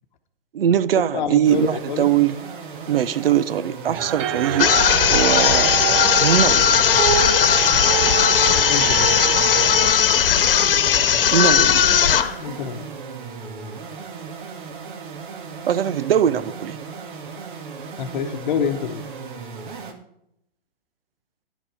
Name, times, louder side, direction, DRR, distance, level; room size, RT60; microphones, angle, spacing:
voice 1, 0.5-2.4 2.9-4.7 5.1-5.8 6.2-6.8 11.3-11.9 15.7-16.8, right 10 dB, 75° right, 0.6 m, -21 dB
voice 2, 1.1-2.1 8.7-9.3 12.4-12.9 18.0-19.0, left 7 dB, 50° left, 1.0 m, -27 dB
sound 1, 1.4-19.9, right 5 dB, 55° right, 1.9 m, -36 dB
sound 2, 4.0-9.9, right 9 dB, 30° right, 0.7 m, -25 dB
sound 3, 4.6-12.4, left 8 dB, 70° left, 1.1 m, -17 dB
11.0 x 7.8 x 4.8 m
hypercardioid pair, 140°, 29 cm